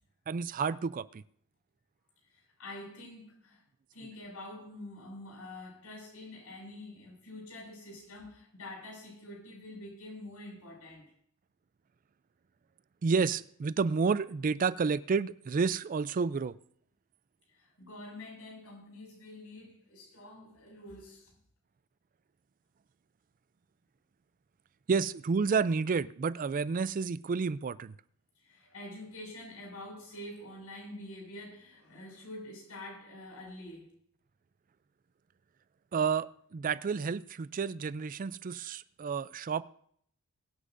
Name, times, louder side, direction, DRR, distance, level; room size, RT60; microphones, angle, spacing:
voice 1, 0.3-1.2 13.0-16.5 24.9-27.9 35.9-39.6, right 5 dB, 40° right, 0.4 m, -30 dB
voice 2, 2.2-3.6 3.9-11.1 17.5-21.3 28.4-33.9, left 1 dB, 75° left, 6.1 m, -46 dB
22.5 x 9.8 x 2.6 m
head